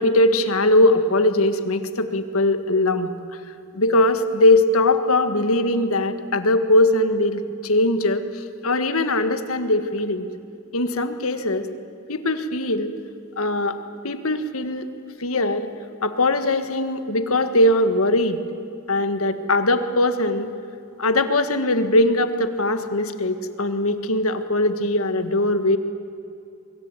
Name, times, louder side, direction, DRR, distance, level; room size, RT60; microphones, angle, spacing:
voice 1, 0.0-3.1 3.7-10.3 10.7-11.7 12.1-12.9 13.4-13.8 14.0-14.9 15.2-15.7 16.0-18.4 18.9-20.5 21.0-25.8, left 1 dB, 70° left, 9 dB, 1.7 m, -20 dB
24.0 x 22.0 x 9.1 m, 2.6 s
head